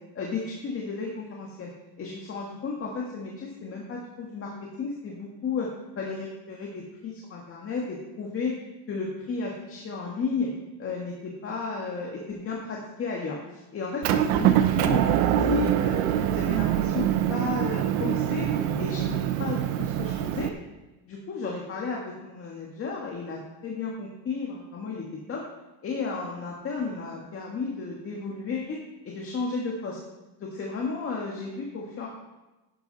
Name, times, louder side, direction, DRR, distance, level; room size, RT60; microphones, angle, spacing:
voice 1, 0.0-1.7 2.0-5.7 6.0-8.5 8.9-10.5 10.8-18.5 18.8-20.5 21.1-25.4 25.8-28.8 29.0-30.0 30.4-32.1, left 4 dB, 30° left, -2 dB, 1.8 m, -33 dB
Motor vehicle (road) / Engine, 14.0-20.5, right 10 dB, 65° right, 1.0 m, -24 dB
11.0 x 10.5 x 4.1 m, 1.1 s
cardioid pair, 145°, 45 cm